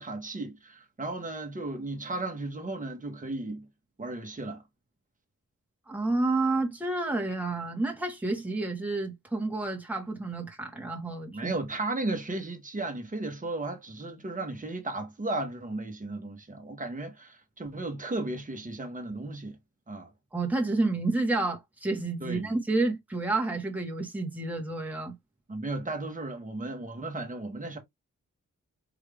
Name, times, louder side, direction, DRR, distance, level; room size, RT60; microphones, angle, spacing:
voice 1, 0.0-3.6 4.0-4.6 11.3-19.5 19.9-20.1 22.2-22.5 25.5-27.8, right 2 dB, 25° right, 1.2 m, -35 dB
voice 2, 5.9-11.5 20.3-25.1, right 2 dB, 5° right, 1.3 m, -30 dB
4.9 x 2.7 x 3.4 m
wide cardioid pair, 165°, 32 cm